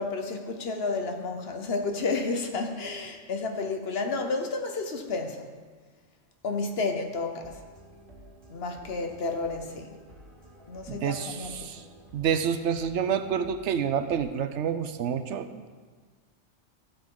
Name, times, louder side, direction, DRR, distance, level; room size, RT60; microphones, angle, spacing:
voice 1, 0.0-5.5 6.4-7.6 8.5-9.9 10.7-11.7, left 3 dB, 60° left, 5 dB, 1.1 m, -31 dB
sound 1, 7.1-14.3, right 1 dB, 45° right, 2.0 m, -52 dB
voice 2, 10.9-11.8 12.1-15.7, right 7 dB, 75° right, 10 dB, 0.9 m, -28 dB
15.0 x 7.0 x 3.8 m, 1.5 s
omnidirectional pair, 1.2 m